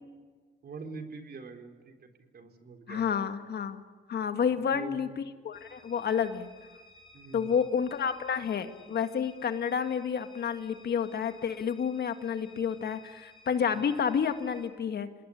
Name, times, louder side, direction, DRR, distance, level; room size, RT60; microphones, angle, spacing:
voice 1, 0.6-3.2 4.4-4.9 7.1-7.6 13.7-13.8, right 3 dB, 50° right, 5 dB, 4.0 m, -45 dB
voice 2, 2.9-3.8 4.1-6.5 7.3-15.1, left 7 dB, 55° left, 8 dB, 2.0 m, -30 dB
sound 1, 5.5-14.7, left 3 dB, 25° left, 5.6 m, -57 dB
27.5 x 19.5 x 10.0 m, 1.4 s
cardioid pair, 90°, 20 cm